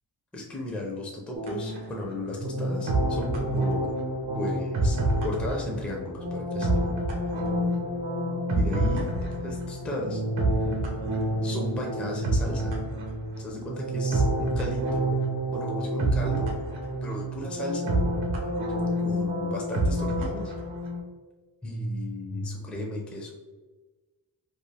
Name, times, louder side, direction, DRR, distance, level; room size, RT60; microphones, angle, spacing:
voice 1, 0.3-4.0 4.3-6.8 8.5-9.1 9.4-10.2 10.6-10.8 11.4-12.7 13.4-15.0 15.5-16.5 17.0-18.0 19.0-20.5 21.6-23.3, left 1 dB, 5° left, -1 dB, 0.4 m, -35 dB
sound 1, 1.3-21.0, right 1 dB, 75° right, 0.8 m, -28 dB
sound 2, 7.4-12.9, equal, 60° left, 0.6 m, -42 dB
2.5 x 2.3 x 3.2 m, 1.3 s
wide cardioid pair, 110°, 45 cm